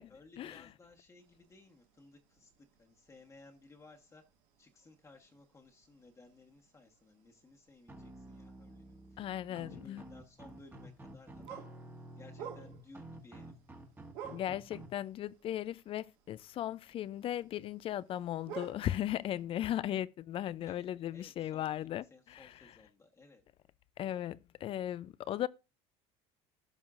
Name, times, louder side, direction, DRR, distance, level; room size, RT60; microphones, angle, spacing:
voice 1, 0.0-4.2 4.6-11.6 12.2-13.5 20.6-23.4, left 3 dB, 20° left, 1.2 m, -59 dB
sound 1, 1.2-19.4, right 8 dB, 80° right, 1.7 m, -54 dB
sound 2, 7.9-14.9, right 1 dB, 15° right, 1.4 m, -51 dB
voice 2, 9.2-10.0 14.3-22.5 24.0-25.5, left 12 dB, 45° left, 0.4 m, -37 dB
15.5 x 5.6 x 2.5 m
supercardioid pair, 105°, 14 cm